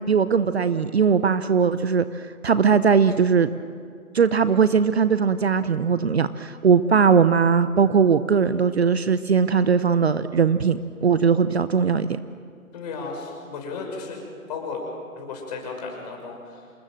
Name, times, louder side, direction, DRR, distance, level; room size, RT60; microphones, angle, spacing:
voice 1, 0.0-3.5 4.1-12.2, right 6 dB, 45° right, 13 dB, 0.8 m, -20 dB
voice 2, 12.7-14.2 14.5-14.8 15.1-16.7, left 4 dB, 30° left, 1 dB, 6.0 m, -34 dB
27.5 x 20.0 x 7.7 m, 2.1 s
figure-of-eight pair, 150°, 43 cm